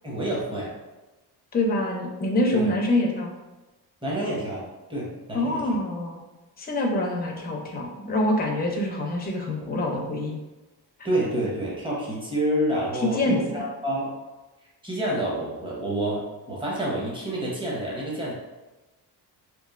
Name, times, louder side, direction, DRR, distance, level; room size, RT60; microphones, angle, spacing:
voice 1, 0.0-0.7 2.5-2.7 4.0-4.6 4.9-5.6 11.0-14.1 14.8-18.3, right 1 dB, 10° right, -5 dB, 0.8 m, -28 dB
voice 2, 1.5-3.3 5.3-6.2 6.6-10.4 13.0-13.6, left 1 dB, 25° left, 0 dB, 0.5 m, -25 dB
3.0 x 2.3 x 2.4 m, 1.1 s
cardioid pair, 120°, 42 cm